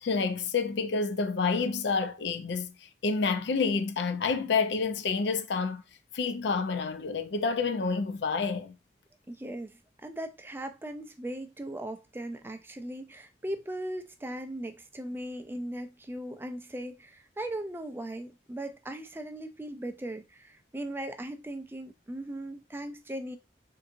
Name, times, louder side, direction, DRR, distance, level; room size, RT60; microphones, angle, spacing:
voice 1, 0.0-5.8 6.1-8.8, left 4 dB, 75° left, 0.4 m, -29 dB
voice 2, 9.3-23.4, right 1 dB, 15° right, 0.3 m, -38 dB
3.7 x 2.7 x 2.5 m
head